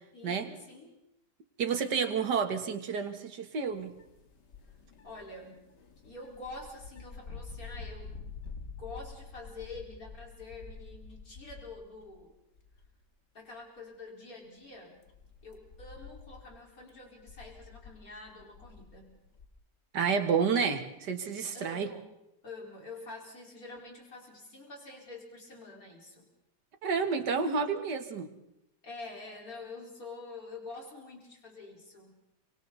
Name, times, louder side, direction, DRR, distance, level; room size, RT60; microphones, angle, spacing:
voice 1, 0.1-0.9 1.8-2.0 5.0-5.6 6.0-8.2 8.8-12.3 13.3-15.0 15.4-19.2 21.5-22.0 22.4-26.3 28.8-32.2, left 3 dB, 55° left, -1 dB, 5.2 m, -46 dB
voice 2, 1.6-4.0 19.9-21.9 26.8-28.3, right 6 dB, 75° right, 7 dB, 2.3 m, -30 dB
sound 1, 3.7-12.2 12.5-13.0 13.5-13.6 14.5-19.5, left 4 dB, 80° left, 2.5 m, -48 dB
29.5 x 24.5 x 4.1 m, 0.83 s
omnidirectional pair, 1.8 m